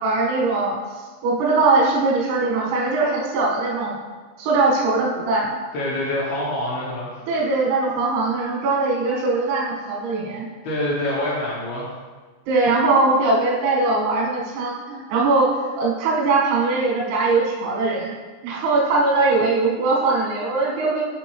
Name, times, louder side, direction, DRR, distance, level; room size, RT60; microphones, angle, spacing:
voice 1, 0.0-4.0 4.4-5.6 7.3-10.5 12.5-18.1 18.4-21.0, right 3 dB, 90° right, -3 dB, 4.1 m, -21 dB
voice 2, 5.7-7.1 10.6-11.9, left 1 dB, 75° left, -7 dB, 2.3 m, -25 dB
8.4 x 5.7 x 3.0 m, 1.4 s
omnidirectional pair, 5.9 m